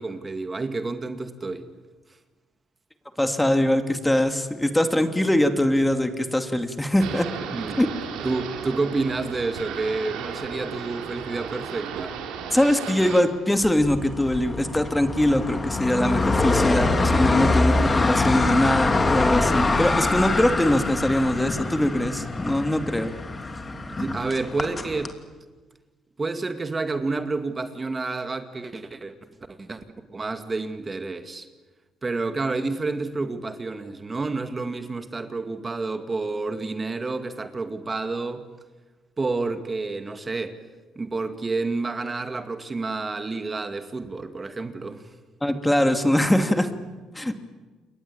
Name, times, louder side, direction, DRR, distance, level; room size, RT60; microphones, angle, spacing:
voice 1, 0.0-1.7 7.5-7.8 8.2-12.2 23.7-25.2 26.2-29.1 29.5-29.8 30.1-31.5 32.0-38.5 39.2-40.6 41.0-45.1, right 3 dB, 25° right, 8 dB, 2.1 m, -29 dB
voice 2, 3.2-7.3 7.8-7.9 12.5-23.1 45.4-46.7 47.1-47.4, left 1 dB, 10° left, 7 dB, 2.5 m, -22 dB
sound 1, 7.0-13.2, right 7 dB, 85° right, 3.8 m, -34 dB
sound 2, 13.6-25.1, left 3 dB, 25° left, 2.8 m, -24 dB
29.0 x 22.5 x 8.8 m, 1.3 s
supercardioid pair, 80°, 0 cm